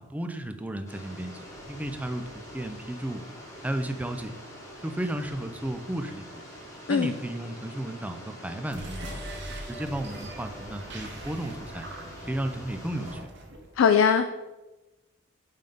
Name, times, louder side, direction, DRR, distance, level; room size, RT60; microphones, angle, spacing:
voice 1, 0.0-3.2 3.6-4.3 4.8-6.4 6.9-9.1 9.7-11.8 12.3-13.3, right 1 dB, 10° right, 7 dB, 0.4 m, -34 dB
sound 1, 0.9-13.1, equal, 15° left, 1.3 m, -45 dB
sound 2, 8.6-13.7, right 1 dB, 60° right, 0.9 m, -41 dB
voice 2, 13.8-14.3, left 6 dB, 80° left, 8 dB, 0.3 m, -20 dB
5.6 x 3.5 x 5.3 m, 1.1 s
head